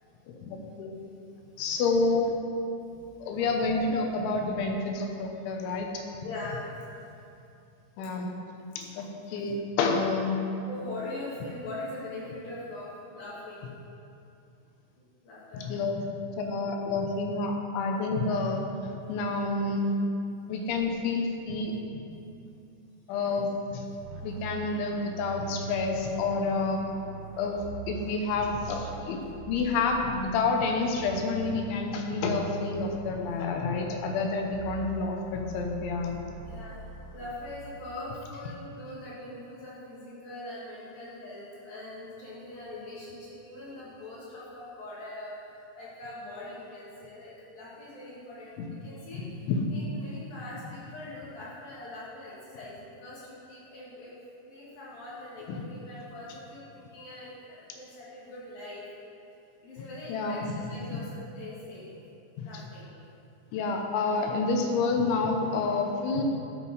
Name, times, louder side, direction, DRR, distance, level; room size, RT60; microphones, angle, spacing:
voice 1, 0.3-0.9 1.6-2.3 3.2-5.9 8.0-8.3 8.8-10.4 15.6-16.0 16.4-18.6 19.1-20.0 20.5-21.7 23.1-26.8 27.4-29.2 29.5-36.2 48.6-48.7 49.5-49.6 55.5-55.6 59.8-60.5 62.4-62.5 63.5-66.2, left 3 dB, 80° left, 2 dB, 3.1 m, -29 dB
voice 2, 1.0-1.8 2.8-3.1 3.7-3.9 5.7-5.8 6.2-7.1 10.7-13.7 15.2-15.7 19.0-19.1 23.2-23.4 33.3-33.4 34.8-34.9 36.5-36.8 37.1-58.8 59.6-61.9 62.4-62.9, left 1 dB, 60° left, -7 dB, 3.0 m, -42 dB
sound 1, 24.0-38.1, right 5 dB, 80° right, 2.9 m, -43 dB
11.5 x 7.5 x 4.0 m, 2.6 s
omnidirectional pair, 5.5 m